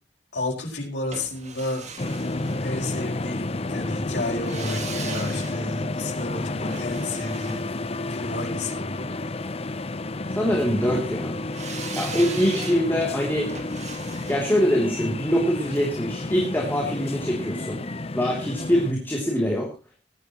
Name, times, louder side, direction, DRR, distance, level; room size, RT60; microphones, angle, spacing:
voice 1, 0.3-1.9 2.6-7.6 8.1-9.1 12.1-12.2, left 2 dB, 75° left, -3 dB, 5.4 m, -32 dB
sound 1, 1.1-3.2 4.3-8.5 11.5-16.5 16.8-16.9, right 5 dB, 40° right, 2.0 m, -40 dB
sound 2, 2.0-18.9, left 2 dB, 35° left, 0.7 m, -31 dB
voice 2, 10.3-11.4 11.9-13.5 14.3-17.8 18.1-19.7, equal, 10° left, -1 dB, 2.9 m, -24 dB
20.0 x 11.0 x 3.0 m, 0.27 s
head